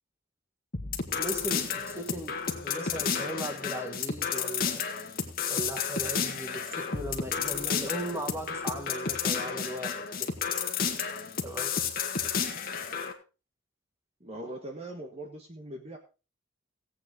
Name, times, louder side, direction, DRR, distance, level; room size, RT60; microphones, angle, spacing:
sound 1, 0.7-13.1, left 6 dB, 45° left, 1.8 m, -32 dB
voice 1, 1.1-4.8 5.5-9.9 10.2-10.3 11.4-11.7, right 1 dB, 15° right, 5 dB, 1.9 m, -37 dB
voice 2, 14.2-16.0, right 1 dB, 30° right, 2 dB, 1.5 m, -41 dB
17.5 x 8.6 x 3.7 m, 0.32 s
head